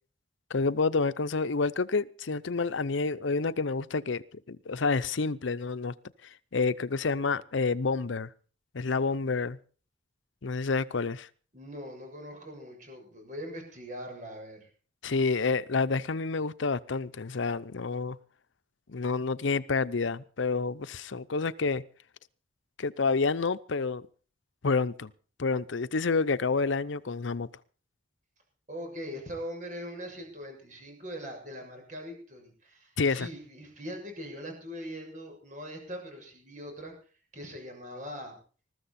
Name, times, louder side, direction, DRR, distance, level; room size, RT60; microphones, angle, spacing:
voice 1, 0.5-5.9 6.2-8.3 8.7-9.6 10.4-11.3 15.0-18.2 18.9-21.8 22.8-24.0 24.6-25.1 25.4-27.5 33.0-33.3, left 4 dB, 80° left, 0.7 m, -29 dB
voice 2, 11.5-14.7 28.7-36.9 37.3-38.4, equal, 40° right, 7.1 m, -41 dB
21.0 x 14.0 x 4.3 m
head